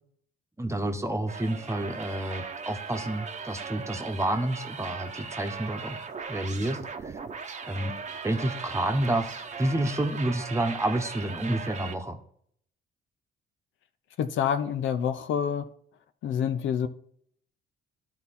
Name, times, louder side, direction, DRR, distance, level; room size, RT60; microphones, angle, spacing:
voice 1, 0.6-6.0 6.3-6.8 7.0-7.2 7.7-7.9 8.2-12.2, right 1 dB, 15° right, 1.1 m, -29 dB
sound 1, 1.3-12.0, right 5 dB, 35° right, 0.9 m, -38 dB
voice 2, 14.2-15.7 16.2-16.9, left 8 dB, 75° left, 0.7 m, -27 dB
12.0 x 4.2 x 4.2 m
cardioid pair, 90°, 20 cm